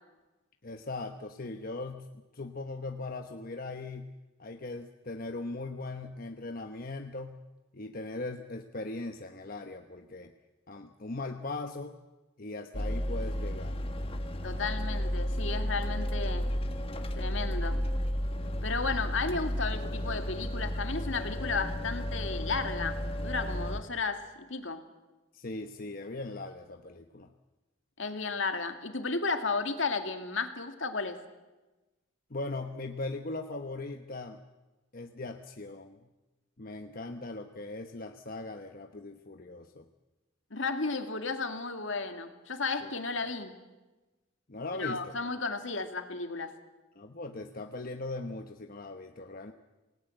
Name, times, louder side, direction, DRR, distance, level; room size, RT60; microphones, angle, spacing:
voice 1, 0.6-2.1 2.3-4.1 4.4-7.4 7.7-10.3 10.7-12.0 12.4-13.8 25.3-27.3 32.3-34.4 34.9-36.0 36.6-39.8 42.8-42.9 44.5-45.1 47.0-49.5, left 2 dB, 45° left, 5 dB, 1.1 m, -39 dB
sound 1, 12.7-23.8, equal, 30° left, 1.6 m, -33 dB
voice 2, 14.4-16.6 17.2-17.8 18.6-24.8 28.0-31.2 40.5-43.6 44.8-46.5, left 4 dB, 70° left, 6 dB, 2.3 m, -33 dB
28.0 x 19.0 x 7.8 m, 1.1 s
head